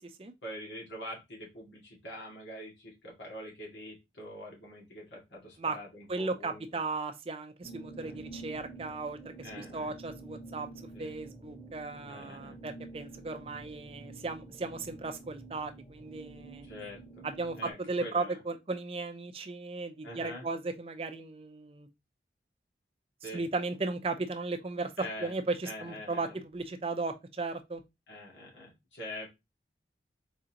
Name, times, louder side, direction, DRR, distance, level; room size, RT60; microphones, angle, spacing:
voice 1, 0.4-6.6 8.0-8.2 9.4-10.0 10.9-11.2 12.0-12.6 16.6-17.3 17.5-18.4 20.0-20.5 23.2-23.4 25.0-25.3 25.6-26.4 28.1-29.3, left 1 dB, 85° left, 2.1 m, -44 dB
voice 2, 6.1-10.7 11.0-16.7 17.2-21.9 23.3-24.9 25.2-27.8, right 3 dB, 30° right, 0.5 m, -36 dB
sound 1, 7.6-17.7, right 2 dB, 20° left, 2.0 m, -48 dB
4.2 x 3.7 x 2.9 m
head